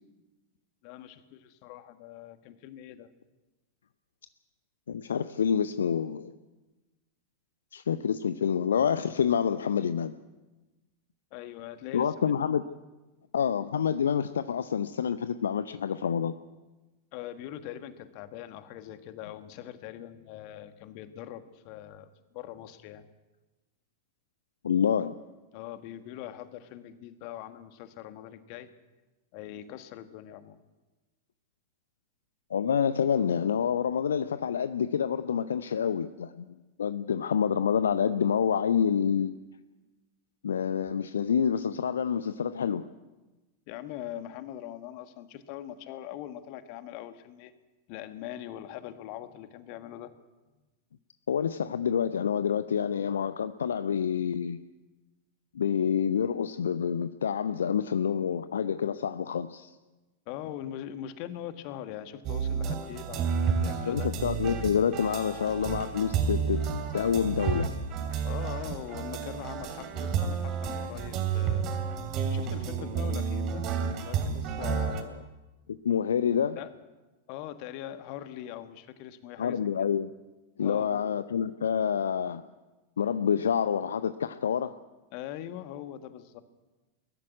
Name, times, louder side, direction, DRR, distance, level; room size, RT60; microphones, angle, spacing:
voice 1, 0.8-3.1 11.3-12.4 17.1-22.1 22.3-23.0 25.5-28.7 29.3-30.6 43.7-47.5 47.9-50.1 60.3-64.1 68.2-71.6 72.3-73.6 74.0-75.3 76.6-76.7 77.3-79.6 80.6-81.1 85.1-86.4, left 12 dB, 45° left, 10 dB, 1.6 m, -42 dB
voice 2, 4.9-6.3 7.7-10.1 11.9-12.6 13.3-16.3 24.6-25.1 32.5-39.3 40.4-42.9 51.3-54.6 55.5-59.8 63.9-66.7 66.9-67.8 75.8-76.6 79.4-80.1 80.6-82.4 83.0-84.8, left 7 dB, 65° left, 12 dB, 0.6 m, -27 dB
sound 1, 62.2-75.0, right 6 dB, 35° right, 2.8 m, -31 dB
21.5 x 13.0 x 9.5 m, 1.1 s
figure-of-eight pair, 90°, 0 cm